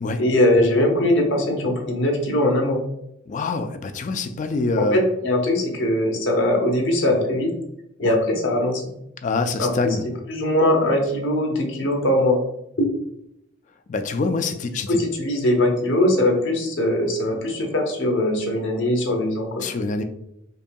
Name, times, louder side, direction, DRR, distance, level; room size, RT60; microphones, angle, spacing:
voice 1, 0.2-2.8 4.8-7.5 8.0-8.9 9.6-9.9 10.3-12.4 12.8-12.9 14.9-19.6, left 1 dB, 65° left, 1 dB, 0.9 m, -21 dB
voice 2, 3.3-5.0 8.0-8.2 9.2-10.1 13.9-15.0 19.6-20.0, left 3 dB, 40° left, 8 dB, 0.3 m, -25 dB
5.2 x 2.7 x 2.2 m, 0.80 s
head